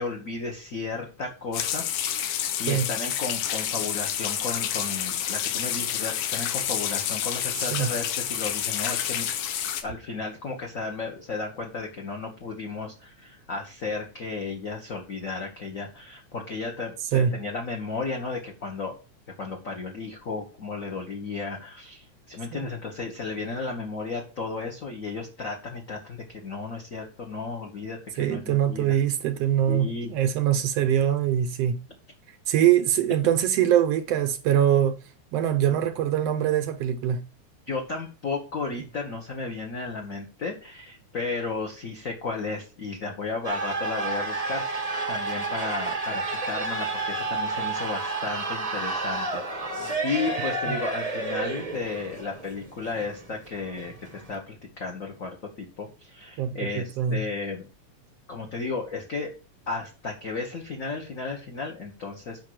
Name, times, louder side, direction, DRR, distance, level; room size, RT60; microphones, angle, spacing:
voice 1, 0.0-9.3 9.8-18.9 19.4-29.0 29.7-30.1 37.7-49.4 49.8-57.7 58.3-59.3 59.7-62.4, left 4 dB, 45° left, 1.1 m, -34 dB
sound 1, 1.5-9.8, left 10 dB, 85° left, 2.4 m, -29 dB
voice 2, 28.2-31.8 32.5-35.0 35.3-37.2 50.7-50.8 56.4-57.2, right 10 dB, 75° right, 1.5 m, -23 dB
sound 2, 43.4-54.3, right 3 dB, 40° right, 0.5 m, -30 dB
9.0 x 5.8 x 4.8 m
omnidirectional pair, 3.4 m